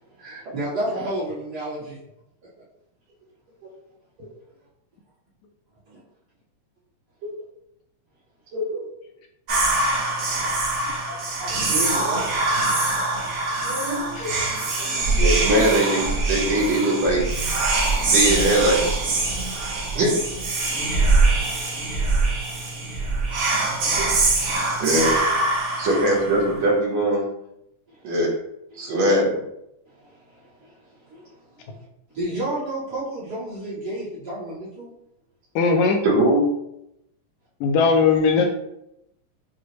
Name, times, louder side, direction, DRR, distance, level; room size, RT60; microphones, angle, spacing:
voice 1, 0.2-2.0 5.9-6.0 11.7-12.3 19.9-20.0 27.9-28.0 28.7-28.9 30.0-30.1 30.6-30.7 31.1-31.2 31.6-31.7 32.1-34.9, right 1 dB, 45° right, -10 dB, 1.5 m, -30 dB
voice 2, 8.5-8.8 11.1-11.6 13.6-14.3 14.8-14.9 15.1-17.3 18.0-19.0 19.9-20.1 23.9-24.0 24.8-25.1 25.8-27.3 28.0-28.3 28.8-29.4 36.0-36.4, right 1 dB, 70° right, -4 dB, 2.4 m, -21 dB
Whispering, 9.5-26.6, right 3 dB, 90° right, 0.9 m, -23 dB
voice 3, 35.6-36.0 37.6-38.6, left 4 dB, 80° left, 3 dB, 1.8 m, -18 dB
6.2 x 2.3 x 3.0 m, 0.81 s
omnidirectional pair, 3.4 m